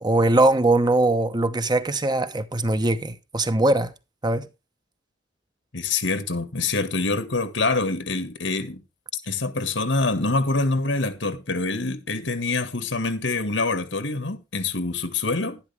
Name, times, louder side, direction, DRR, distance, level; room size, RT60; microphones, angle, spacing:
voice 1, 0.0-3.9 4.2-4.5, right 2 dB, 25° right, 0.9 m, -21 dB
voice 2, 5.7-8.8 9.3-15.6, left 3 dB, 85° left, 1.8 m, -25 dB
11.5 x 11.0 x 3.4 m
head